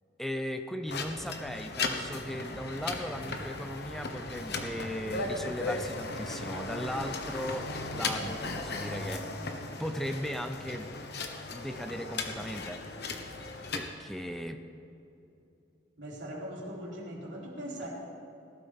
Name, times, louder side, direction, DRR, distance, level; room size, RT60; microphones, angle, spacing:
voice 1, 0.2-9.4 9.8-10.9 11.5-12.8 13.7-14.6, equal, ahead, 7 dB, 0.5 m, -37 dB
sound 1, 0.9-13.8, left 3 dB, 60° left, 1.2 m, -36 dB
voice 2, 16.0-17.9, equal, 80° right, -4 dB, 3.6 m, -40 dB
18.5 x 12.5 x 3.5 m, 2.8 s
head